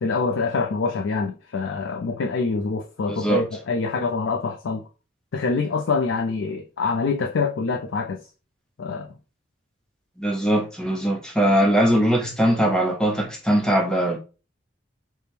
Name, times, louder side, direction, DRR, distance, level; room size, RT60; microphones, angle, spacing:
voice 1, 0.0-4.9 5.3-8.2 8.8-9.1, left 4 dB, 85° left, 0.4 m, -25 dB
voice 2, 3.1-3.4 10.2-14.2, right 1 dB, 5° left, 0.7 m, -21 dB
3.4 x 2.1 x 4.3 m
head